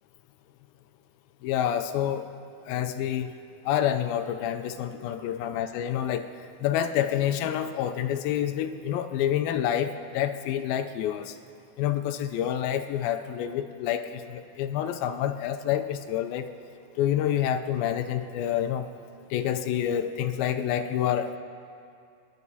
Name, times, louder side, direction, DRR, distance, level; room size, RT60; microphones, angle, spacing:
voice 1, 1.4-2.3 2.7-3.3 3.6-6.3 6.6-11.4 11.8-16.5 17.0-18.9 19.3-21.4, left 10 dB, 85° left, 6 dB, 2.4 m, -28 dB
24.5 x 11.0 x 2.7 m, 2.4 s
omnidirectional pair, 4.2 m